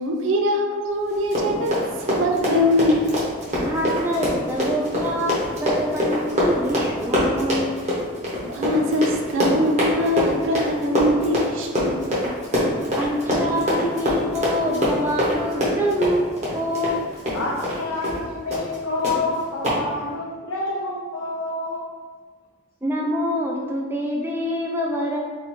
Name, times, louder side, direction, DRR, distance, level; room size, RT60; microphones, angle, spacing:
voice 1, 0.0-3.1 8.4-12.3, left 1 dB, 70° right, 2 dB, 0.5 m, -23 dB
Run, 1.1-17.8 18.0-18.2 18.5-18.8 19.0-19.1 19.6-19.8, equal, 35° right, 0.9 m, -23 dB
voice 2, 3.7-7.8 13.0-17.3 22.8-25.2, equal, 10° right, -2 dB, 0.4 m, -26 dB
voice 3, 17.3-21.8, left 2 dB, 80° left, -4 dB, 0.5 m, -28 dB
2.7 x 2.5 x 4.2 m, 1.5 s
head